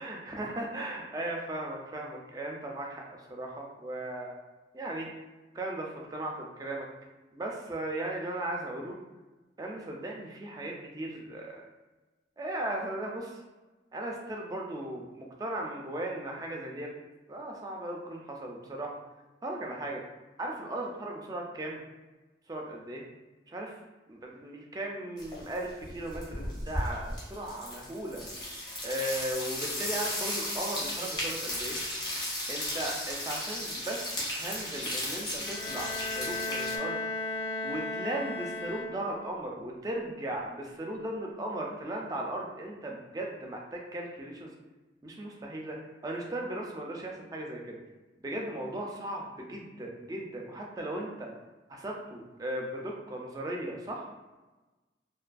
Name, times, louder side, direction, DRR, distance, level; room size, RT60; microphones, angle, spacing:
voice 1, 0.0-4.3 4.7-5.1 5.5-6.9 7.3-9.0 9.6-11.6 12.4-13.4 13.9-16.9 17.3-19.0 19.4-20.0 20.4-21.8 22.5-23.0 23.5-23.8 24.1-28.2 28.8-31.8 32.5-37.0 37.6-44.5 45.0-45.8 46.0-47.8 48.2-51.3 51.7-54.1, right 1 dB, 20° right, -1 dB, 0.3 m, -37 dB
sound 1, 25.2-25.6 25.8-36.8, left 1 dB, 25° left, 0.7 m, -35 dB
Bowed string instrument, 35.4-39.3, left 2 dB, 55° left, 0.9 m, -35 dB
2.6 x 2.5 x 2.2 m, 1.2 s
head